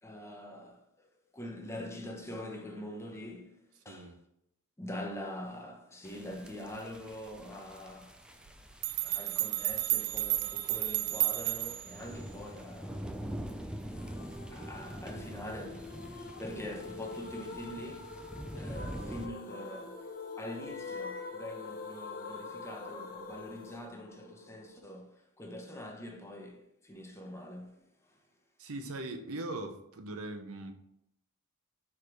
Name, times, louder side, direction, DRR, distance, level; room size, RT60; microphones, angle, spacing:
voice 1, 0.0-3.6 3.8-4.2 4.8-8.2 9.0-14.0 14.5-28.2, left 1 dB, 10° left, 0.9 m, -44 dB
sound 1, 6.1-19.3, equal, 5° right, 0.4 m, -45 dB
sound 2, 8.5-8.6 8.8-12.0, right 17 dB, 85° right, 0.3 m, -32 dB
sound 3, 13.9-24.9, left 3 dB, 40° left, 0.9 m, -45 dB
voice 2, 28.6-30.7, right 2 dB, 70° right, 0.8 m, -40 dB
4.9 x 4.6 x 4.9 m
head